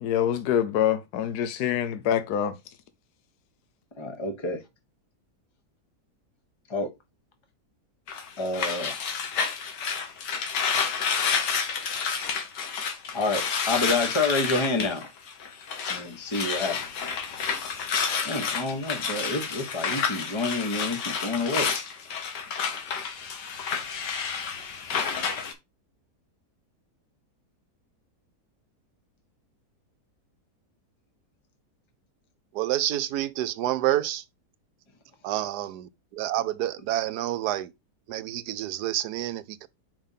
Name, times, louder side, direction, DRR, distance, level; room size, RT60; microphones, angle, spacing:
voice 1, 0.0-2.5, left 10 dB, 70° left, 1.2 m, -25 dB
voice 2, 4.0-4.6 6.7-6.9 8.4-8.9 13.1-15.1 15.9-16.8 18.2-21.7, left 2 dB, 20° left, 1.1 m, -28 dB
sound 1, 8.1-16.0 16.3-25.5, left 6 dB, 90° left, 1.7 m, -30 dB
voice 3, 32.5-34.2 35.2-37.7 38.1-39.7, right 13 dB, 75° right, 1.2 m, -28 dB
5.4 x 3.5 x 5.6 m
omnidirectional pair, 1.8 m